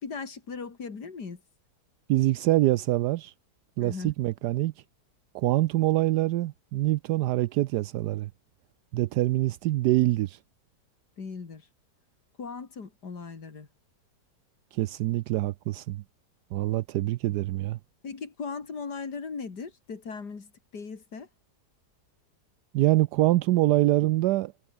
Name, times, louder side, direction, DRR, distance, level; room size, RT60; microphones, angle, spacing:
voice 1, 0.0-1.4 3.8-4.1 11.2-11.7 12.4-13.7 18.0-21.3, left 5 dB, 80° left, 3.2 m, -38 dB
voice 2, 2.1-3.3 3.8-4.7 5.3-8.3 8.9-10.4 14.7-16.0 16.5-17.8 22.7-24.5, right 16 dB, 80° right, 1.1 m, -25 dB
omnidirectional pair, 1.8 m